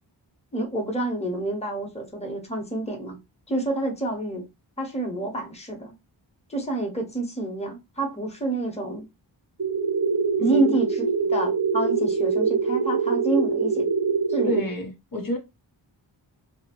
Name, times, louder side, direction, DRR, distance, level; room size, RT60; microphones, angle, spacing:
voice 1, 0.5-3.2 3.5-4.4 4.8-5.9 6.5-9.1 10.4-13.9 14.3-14.6, right 2 dB, 15° left, 0.9 m, -28 dB
sound 1, 9.6-14.6, right 5 dB, 40° right, 0.8 m, -24 dB
voice 2, 10.4-10.8 14.5-15.4, equal, 50° left, 0.6 m, -29 dB
2.8 x 2.0 x 2.8 m
wide cardioid pair, 90°, 44 cm